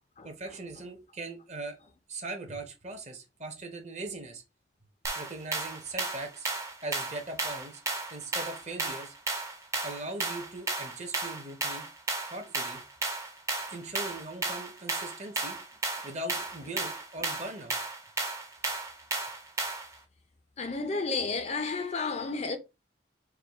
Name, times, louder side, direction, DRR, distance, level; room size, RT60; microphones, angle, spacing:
voice 1, 0.2-1.8 2.1-4.4 5.1-6.5 6.8-7.8 8.1-9.1 9.8-11.9 12.3-12.8 13.7-15.6 16.0-17.8, right 2 dB, 40° right, 0.9 m, -40 dB
sound 1, 5.0-20.0, right 3 dB, 15° right, 0.6 m, -34 dB
voice 2, 20.6-22.6, left 4 dB, 35° left, 0.5 m, -31 dB
4.7 x 2.2 x 3.5 m
head